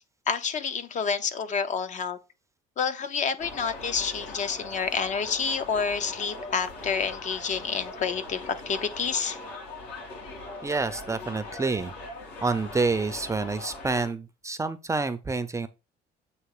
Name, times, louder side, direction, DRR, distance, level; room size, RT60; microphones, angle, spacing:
voice 1, 0.3-2.2 2.8-9.4, left 6 dB, 45° left, 0.7 m, -29 dB
sound 1, 3.4-14.1, left 2 dB, 80° left, 2.5 m, -41 dB
voice 2, 10.6-11.9 12.4-15.7, right 3 dB, 20° right, 0.5 m, -28 dB
7.8 x 2.9 x 4.8 m
cardioid pair, 110°, 17 cm